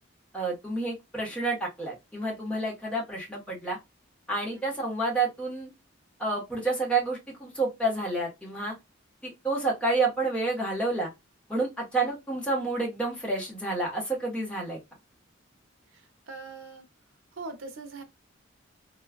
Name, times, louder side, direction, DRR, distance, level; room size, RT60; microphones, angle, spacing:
voice 1, 0.3-3.8 4.3-5.7 6.2-8.7 9.2-11.1 11.5-14.8, right 2 dB, 5° left, 1.1 m, -29 dB
voice 2, 15.9-16.9 17.3-18.0, right 3 dB, 80° right, 0.7 m, -42 dB
3.1 x 2.3 x 2.2 m
head